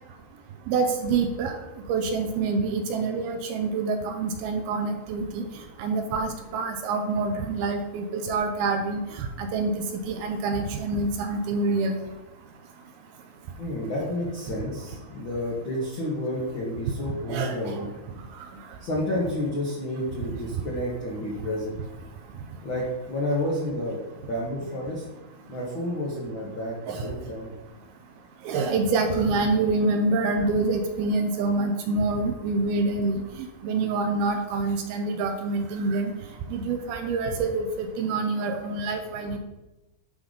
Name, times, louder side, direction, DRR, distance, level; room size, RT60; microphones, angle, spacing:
voice 1, 0.7-1.5 1.9-5.5 5.8-9.7 10.1-12.0 17.3-17.7 26.9-27.1 28.5-33.2 33.6-36.1 36.5-39.4, right 3 dB, 80° right, 5 dB, 2.4 m, -26 dB
voice 2, 13.5-17.9 18.8-21.8 22.6-24.0 24.3-25.0 25.5-27.5, left 1 dB, 70° left, -5 dB, 1.1 m, -30 dB
11.5 x 3.9 x 5.1 m, 1.0 s
omnidirectional pair, 4.8 m